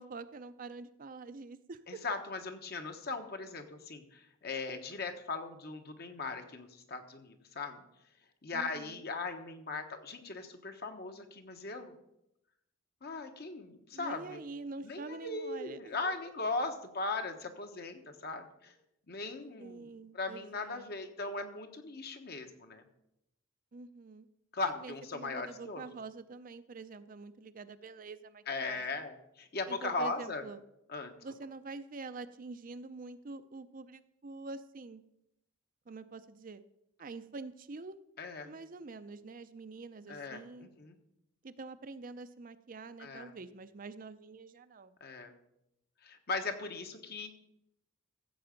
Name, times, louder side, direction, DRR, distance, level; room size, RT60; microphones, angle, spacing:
voice 1, 0.0-2.0 8.5-9.0 13.9-16.3 19.6-20.9 23.7-24.3 24.6-28.8 29.7-30.6 31.2-35.0 35.9-36.6 37.0-38.0 38.4-40.7 41.4-45.0, right 3 dB, 45° right, 11 dB, 0.5 m, -46 dB
voice 2, 1.9-7.8 8.4-11.9 13.0-14.4 14.8-18.7 19.1-19.9 20.1-22.8 24.5-25.8 28.5-30.4 30.9-31.1 38.2-38.5 40.1-40.4 40.8-41.0 43.0-43.3 45.0-45.3 46.0-47.3, left 3 dB, 55° left, 6 dB, 1.3 m, -38 dB
14.5 x 7.8 x 5.2 m, 0.84 s
head